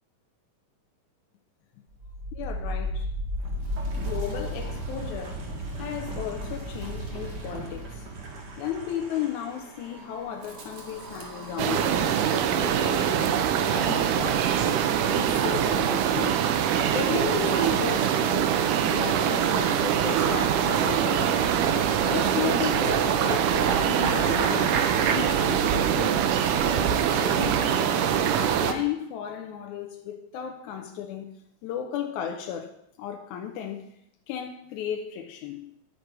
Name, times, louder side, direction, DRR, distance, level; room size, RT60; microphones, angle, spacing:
Wind, 1.9-14.9, equal, 50° right, 1.4 m, -36 dB
voice 1, 2.3-3.1 4.0-5.5 5.8-8.1 8.6-12.2 12.5-13.4 13.7-14.8 15.1-16.5 16.9-18.6 18.9-21.3 22.0-24.8 25.1-26.3 26.6-27.9 28.4-31.3 31.6-33.9 34.3-35.7, left 9 dB, 80° left, 1.9 m, -35 dB
sound 1, 11.6-28.7, right 9 dB, 85° right, 2.2 m, -24 dB
sound 2, 15.8-16.0 16.4-25.2, right 5 dB, 70° right, 1.3 m, -33 dB
10.5 x 6.5 x 4.7 m
omnidirectional pair, 3.7 m